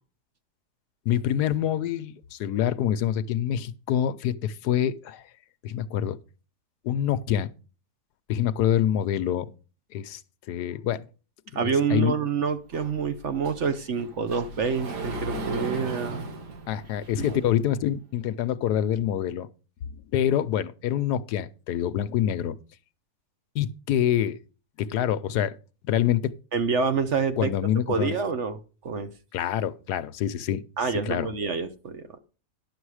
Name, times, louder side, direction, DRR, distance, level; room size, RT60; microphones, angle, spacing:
voice 1, 1.1-5.3 5.6-6.2 6.8-7.5 8.3-9.5 9.9-10.2 10.5-11.0 11.5-12.1 16.7-19.5 19.8-22.6 23.5-24.4 24.8-25.5 25.8-26.3 27.4-28.1 29.3-30.6 31.0-31.3, left 10 dB, 80° left, 1.2 m, -26 dB
voice 2, 11.5-16.3 17.2-17.4 26.5-27.5 27.9-29.1 30.8-32.0, right 5 dB, 55° right, 1.0 m, -27 dB
Sliding door, 12.7-17.7, right 2 dB, 85° right, 2.2 m, -37 dB
11.0 x 7.1 x 4.8 m
omnidirectional pair, 1.7 m